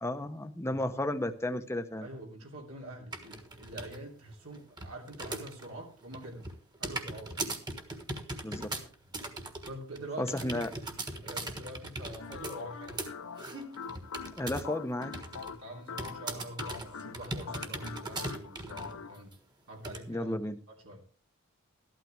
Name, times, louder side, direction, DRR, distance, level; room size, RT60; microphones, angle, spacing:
voice 1, 0.0-2.1 8.4-8.7 10.2-10.7 14.3-15.1 20.1-20.6, left 1 dB, 15° left, 8 dB, 0.9 m, -33 dB
voice 2, 2.0-6.4 6.8-7.4 9.6-10.8 11.2-13.0 15.4-19.3 19.7-20.3 20.7-21.0, right 1 dB, 80° right, 0 dB, 3.2 m, -45 dB
sound 1, 3.1-4.0 4.3-5.7 6.0-14.8 15.0-15.5 16.0-19.0 19.3-19.4 19.8-20.0, right 2 dB, 20° right, 1.5 m, -39 dB
sound 2, 12.2-19.2, left 6 dB, 75° left, 0.6 m, -44 dB
13.5 x 12.0 x 3.4 m, 0.40 s
head